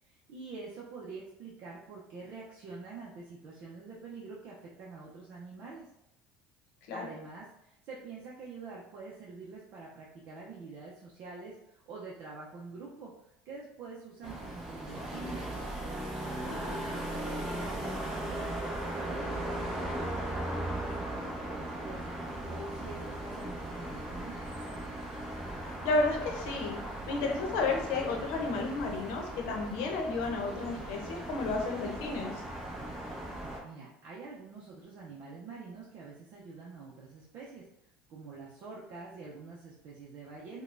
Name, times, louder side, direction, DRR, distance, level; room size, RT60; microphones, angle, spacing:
voice 1, 0.0-5.9 6.9-13.1 13.4-15.5 16.4-24.4 33.6-37.7 38.1-40.6, right 4 dB, 50° right, -4 dB, 0.6 m, -46 dB
sound 1, 14.2-33.6, right 1 dB, 15° right, 0.9 m, -38 dB
voice 2, 25.8-26.8 27.1-32.3, left 3 dB, 80° left, 1 dB, 0.8 m, -32 dB
4.9 x 2.2 x 2.5 m, 0.83 s
cardioid pair, 140°, 4 cm